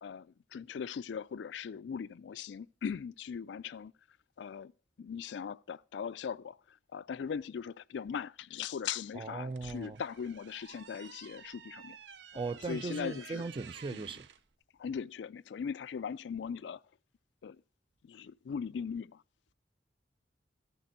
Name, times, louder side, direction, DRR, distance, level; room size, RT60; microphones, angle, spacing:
voice 1, 0.0-3.9 4.4-4.7 5.0-6.6 6.9-12.0 12.6-13.4 13.9-14.1 14.8-16.8 17.4-17.6 18.1-19.2, left 7 dB, 75° left, 0.4 m, -39 dB
voice 2, 9.1-10.0 12.4-14.3, right 3 dB, 30° right, 0.4 m, -38 dB
sound 1, 9.3-14.4, right 7 dB, 75° right, 0.6 m, -52 dB
13.5 x 6.8 x 4.2 m
head